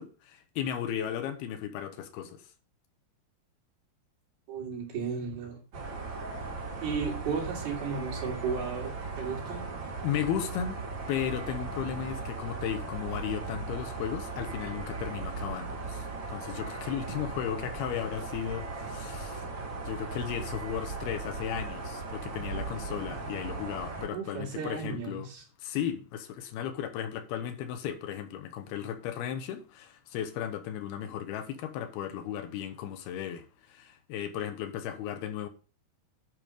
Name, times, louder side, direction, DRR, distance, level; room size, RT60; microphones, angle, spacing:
voice 1, 0.0-2.5 10.0-10.8 11.1-19.5 19.9-25.3 25.6-35.5, left 9 dB, 80° left, 2.9 m, -35 dB
voice 2, 4.5-5.6 6.8-9.6 24.1-25.4, right 5 dB, 70° right, 4.9 m, -34 dB
sound 1, 5.7-24.1, right 3 dB, 45° right, 1.6 m, -37 dB
11.0 x 5.1 x 5.2 m
omnidirectional pair, 4.7 m